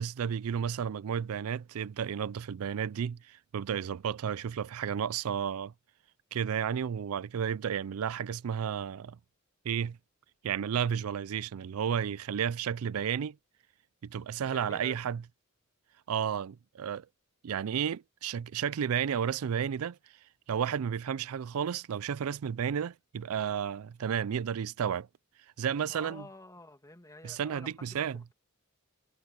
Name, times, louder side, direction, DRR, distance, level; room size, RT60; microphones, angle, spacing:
voice 1, 0.0-5.7 6.3-9.2 9.7-10.0 10.4-13.4 14.0-15.2 16.1-17.1 17.4-20.0 20.5-25.1 25.6-26.2 27.2-28.2, right 8 dB, 80° right, 0.4 m, -32 dB
voice 2, 14.4-15.0 25.9-28.3, left 2 dB, 15° left, 2.4 m, -49 dB
head